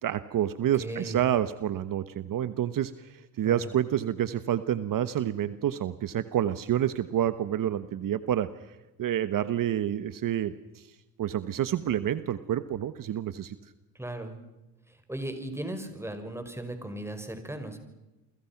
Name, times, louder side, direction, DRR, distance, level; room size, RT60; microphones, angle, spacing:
voice 1, 0.0-8.5 9.0-10.9 11.2-13.6, right 11 dB, 55° right, 13 dB, 1.3 m, -28 dB
voice 2, 0.8-1.2 3.4-3.6 14.0-14.3 15.1-17.8, right 1 dB, 5° right, 7 dB, 5.5 m, -36 dB
29.5 x 24.0 x 6.0 m, 1.0 s
cardioid pair, 95°, 38 cm